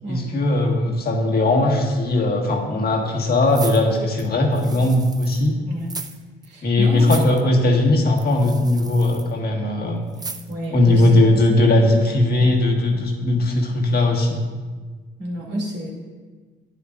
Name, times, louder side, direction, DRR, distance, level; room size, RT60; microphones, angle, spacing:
voice 1, 0.1-5.5 6.6-10.0 10.7-14.4, left 2 dB, 50° left, 0 dB, 1.5 m, -18 dB
sound 1, 3.5-5.5 5.8-6.2 6.4-6.5 7.0-7.4 8.2-9.3 10.1-10.7 11.1-11.2, right 3 dB, 20° right, 0.5 m, -36 dB
voice 2, 6.4-7.2 10.5-11.2 15.2-15.9, right 1 dB, 60° right, -2 dB, 2.5 m, -30 dB
10.5 x 9.4 x 2.4 m, 1.4 s
cardioid pair, 90°, 20 cm